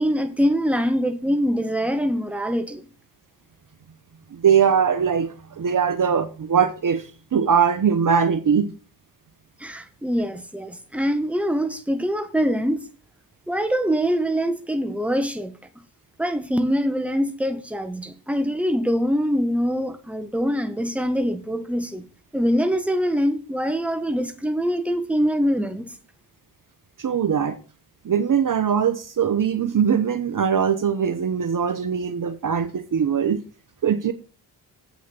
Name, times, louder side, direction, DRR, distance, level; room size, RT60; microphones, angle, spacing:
voice 1, 0.0-2.8 9.6-12.8 13.5-15.5 16.2-22.0 22.3-25.9, equal, 5° right, 1.6 m, -24 dB
voice 2, 4.3-8.7 27.0-27.6 28.0-33.4 33.8-34.1, right 7 dB, 45° right, 1.1 m, -21 dB
8.1 x 6.2 x 7.0 m
hypercardioid pair, 45°, 45 cm